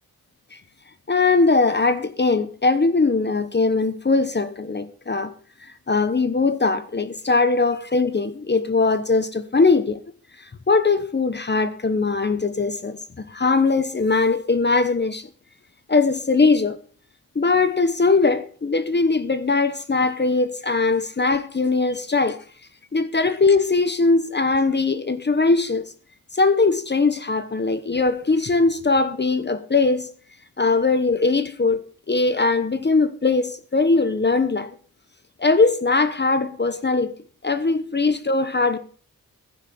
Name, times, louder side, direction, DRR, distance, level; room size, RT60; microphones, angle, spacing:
voice 1, 1.1-5.3 5.9-10.0 10.4-15.3 15.9-16.8 17.3-22.4 22.9-25.9 26.3-30.1 30.6-34.8 35.4-37.1 37.4-38.8, left 3 dB, 30° left, 1.0 m, -20 dB
15.5 x 11.5 x 4.2 m
wide cardioid pair, 140°, 35 cm